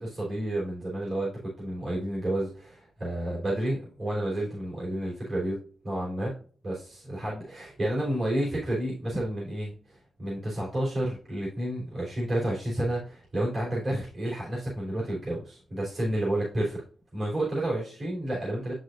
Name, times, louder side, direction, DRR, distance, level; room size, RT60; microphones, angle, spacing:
voice 1, 0.0-1.3 1.6-5.6 5.8-6.3 6.6-16.8 17.1-18.7, right 1 dB, 35° right, -6 dB, 3.3 m, -30 dB
8.0 x 6.2 x 2.5 m, 0.41 s
wide cardioid pair, 140°, 0 cm